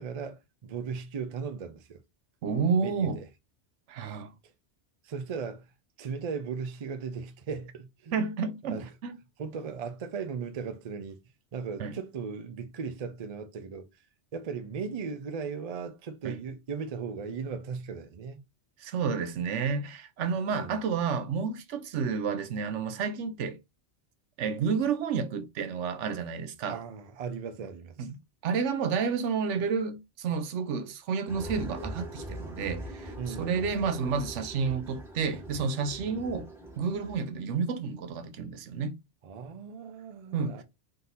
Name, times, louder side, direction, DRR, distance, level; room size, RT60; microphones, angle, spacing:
voice 1, 0.0-2.0 2.8-3.3 4.0-4.2 5.0-5.6 6.0-8.2 8.7-8.9 9.4-11.2 11.5-13.9 14.3-18.4 20.5-20.7 26.7-28.1 33.2-33.9 36.1-36.3 39.2-40.6, right 5 dB, 45° right, 0.5 m, -37 dB
voice 2, 2.4-3.2 3.9-4.3 8.1-9.2 11.8-12.0 16.2-16.4 18.8-23.6 24.4-26.8 28.0-36.5 36.8-38.9 40.3-40.6, right 5 dB, 85° right, 1.0 m, -30 dB
sound 1, 31.3-37.2, right 1 dB, ahead, 0.9 m, -42 dB
3.9 x 2.7 x 3.9 m
omnidirectional pair, 1.2 m